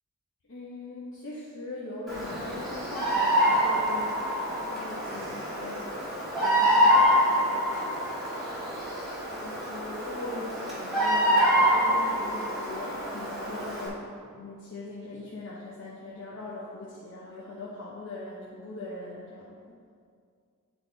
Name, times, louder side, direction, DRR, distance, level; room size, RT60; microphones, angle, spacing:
voice 1, 0.4-4.2 4.7-5.8 6.4-7.7 9.2-19.8, left 2 dB, 55° left, -7 dB, 1.0 m, -40 dB
Bird vocalization bird call bird song, 2.1-13.9, equal, ahead, 1.8 m, -26 dB
10.0 x 4.0 x 3.9 m, 2.2 s
head